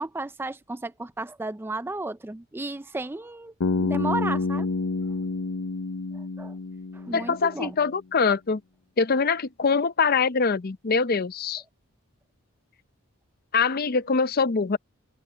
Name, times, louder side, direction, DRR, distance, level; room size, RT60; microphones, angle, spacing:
voice 1, 0.0-3.5 3.8-4.7 6.1-6.6 6.9-7.8, right 2 dB, 10° right, 0.3 m, -33 dB
Bass guitar, 3.6-7.7, left 3 dB, 80° left, 0.7 m, -28 dB
voice 2, 7.1-8.6 9.0-11.6 13.5-14.8, left 5 dB, 45° left, 0.6 m, -23 dB
open air
head